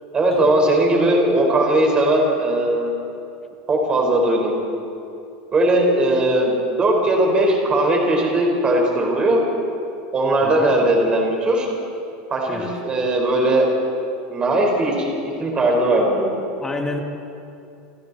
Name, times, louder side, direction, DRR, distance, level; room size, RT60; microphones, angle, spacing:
voice 1, 0.1-2.9 3.7-4.5 5.5-9.4 10.1-11.7 12.3-13.7 14.3-16.4, right 1 dB, 20° right, 0 dB, 4.7 m, -19 dB
voice 2, 10.4-10.8 12.5-12.7 16.6-17.0, left 2 dB, 10° left, 2 dB, 2.1 m, -29 dB
29.0 x 26.5 x 4.3 m, 2.6 s
supercardioid pair, 160°, 5 cm